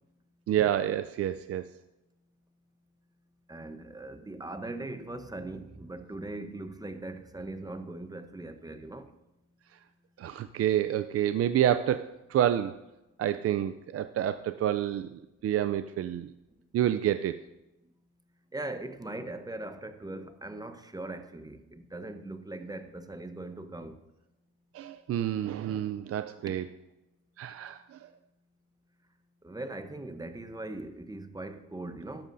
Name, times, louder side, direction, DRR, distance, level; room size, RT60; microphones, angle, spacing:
voice 1, 0.5-1.7 10.2-12.8 13.2-16.3 16.7-17.4 24.7-26.7 27.4-28.1, right 11 dB, 50° right, 0.4 m, -28 dB
voice 2, 3.5-9.1 18.5-24.0 29.4-32.3, right 2 dB, 15° right, 0.8 m, -40 dB
13.0 x 11.5 x 2.6 m
cardioid pair, 90°, 30 cm